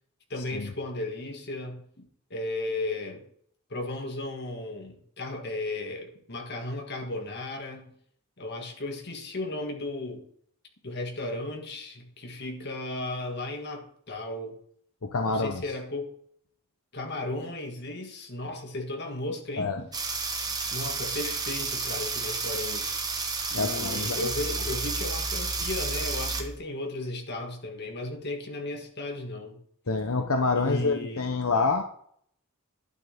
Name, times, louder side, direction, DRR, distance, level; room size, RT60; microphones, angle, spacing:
voice 1, 0.3-2.1 2.3-3.3 3.7-7.9 8.4-10.3 10.8-14.6 15.3-16.1 16.9-19.9 20.7-22.9 23.5-29.6 30.6-31.3, left 2 dB, 50° left, 2.2 m, -35 dB
voice 2, 15.0-15.6 19.6-19.8 23.5-24.3 29.9-31.8, left 3 dB, 80° left, 1.0 m, -27 dB
sound 1, 19.9-26.6, right 4 dB, 20° right, 1.4 m, -31 dB
11.5 x 9.4 x 3.7 m
head